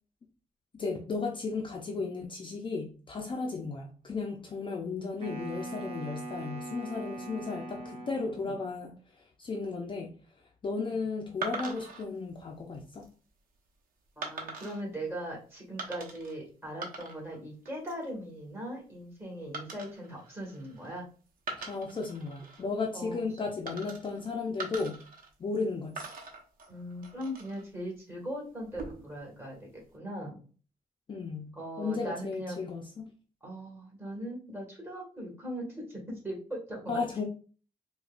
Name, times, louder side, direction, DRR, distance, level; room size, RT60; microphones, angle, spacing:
voice 1, 0.7-10.1 10.6-13.1 21.6-25.0 25.4-26.1 31.1-33.1 36.9-37.2, left 4 dB, 35° left, 2 dB, 0.4 m, -35 dB
Wind instrument woodwind instrument, 5.2-8.7, right 2 dB, 40° right, 0.9 m, -41 dB
sound 1, 11.4-12.0 12.7-13.1 14.2-14.8 15.8-16.3 16.6-17.4 17.7-18.1 19.5-21.0 21.4-22.6 23.7-24.2 24.6-25.6 26.0-27.6 28.6-29.2, right 3 dB, 80° right, 0.8 m, -42 dB
voice 2, 14.1-21.1 22.9-23.3 26.7-30.4 31.5-32.6 33.4-36.9, equal, 15° right, -3 dB, 1.7 m, -40 dB
4.8 x 2.2 x 2.4 m, 0.39 s
wide cardioid pair, 135°, 14 cm